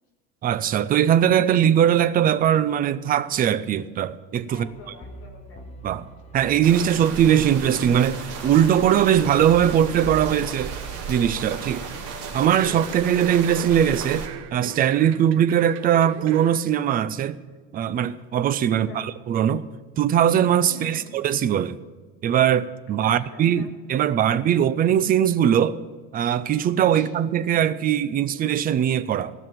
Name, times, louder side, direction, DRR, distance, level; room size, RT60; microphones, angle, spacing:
voice 1, 0.4-4.7 5.8-6.1 6.3-10.7 11.1-11.9 12.3-17.4 17.7-19.7 20.0-21.8 22.2-25.8 26.1-29.3, right 9 dB, 25° right, 0.4 m, -20 dB
voice 2, 4.5-5.7 18.9-19.1 20.7-21.1 23.0-23.7 26.9-27.1, left 2 dB, 35° left, 4.6 m, -45 dB
sound 1, 4.5-12.9, right 2 dB, 20° left, 0.8 m, -43 dB
sound 2, 6.6-14.3, right 5 dB, 60° right, 2.8 m, -34 dB
sound 3, 12.6-16.6 17.0-17.1, right 11 dB, 75° right, 0.9 m, -38 dB
16.0 x 6.2 x 8.8 m
cardioid pair, 165°, 36 cm